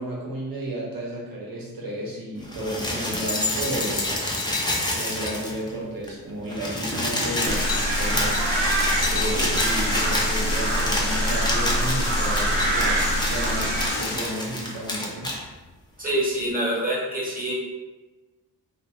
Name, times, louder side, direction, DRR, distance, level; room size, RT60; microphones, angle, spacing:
voice 1, 0.0-4.3 4.9-8.4 9.1-15.3, right 1 dB, 50° right, -4 dB, 1.2 m, -32 dB
sound 1, 2.4-5.8 6.0-6.1 6.4-15.4 16.3-16.4, left 1 dB, 10° left, 0.6 m, -28 dB
sound 2, 7.2-14.2, left 3 dB, 60° left, 0.8 m, -31 dB
sound 3, 7.4-13.9, right 1 dB, 75° right, 0.9 m, -25 dB
voice 2, 16.0-17.5, right 1 dB, 20° right, -4 dB, 1.1 m, -25 dB
2.7 x 2.3 x 3.1 m, 1.2 s
cardioid pair, 75°, 43 cm